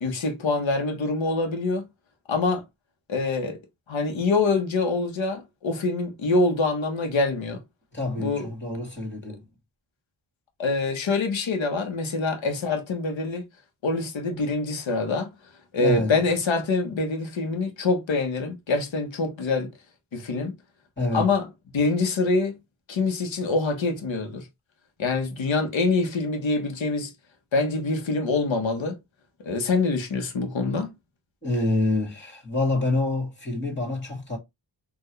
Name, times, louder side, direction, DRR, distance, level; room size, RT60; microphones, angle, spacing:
voice 1, 0.0-1.9 2.3-2.6 3.1-3.6 3.9-7.6 8.2-8.5 10.6-13.4 13.8-15.3 15.7-19.7 20.1-20.5 21.1-21.5 21.7-22.5 22.9-24.4 25.0-27.1 27.5-29.0 29.4-30.9, left 3 dB, 70° left, 1.4 m, -25 dB
voice 2, 7.9-9.4 15.8-16.2 21.0-21.3 31.4-34.4, left 2 dB, 25° left, 2.1 m, -26 dB
4.7 x 2.8 x 3.2 m
cardioid pair, 75°, 47 cm